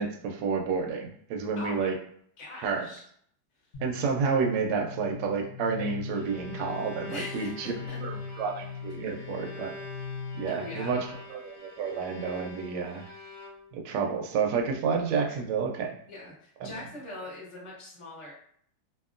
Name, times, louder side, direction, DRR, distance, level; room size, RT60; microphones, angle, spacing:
voice 1, 0.0-2.0 2.6-2.9 3.8-9.8 10.3-13.0 13.7-16.0 16.6-16.7, right 5 dB, 80° right, 2 dB, 1.2 m, -30 dB
voice 2, 1.6-1.9 2.4-3.0 3.6-3.7 7.1-8.0 10.5-11.0 15.2-15.4 16.1-18.3, left 2 dB, 25° left, -5 dB, 0.7 m, -41 dB
sound 1, 3.7-11.3, left 6 dB, 50° left, 1.0 m, -40 dB
Bowed string instrument, 6.0-13.9, left 1 dB, 70° left, 1.0 m, -46 dB
2.8 x 2.6 x 2.4 m, 0.63 s
omnidirectional pair, 1.9 m